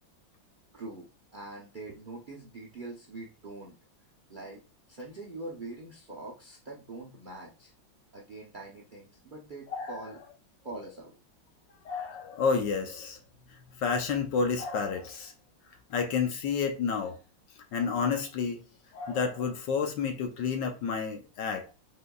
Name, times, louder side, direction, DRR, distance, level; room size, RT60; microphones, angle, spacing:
voice 1, 0.7-3.8 4.3-4.6 4.9-7.7 8.1-10.2 10.6-11.2, right 2 dB, 70° right, 0.4 m, -43 dB
voice 2, 9.7-10.0 11.8-13.2 13.8-15.3 15.9-17.2 17.7-18.6 18.9-21.7, left 5 dB, 70° left, 1.4 m, -30 dB
5.2 x 4.0 x 2.3 m
omnidirectional pair, 2.1 m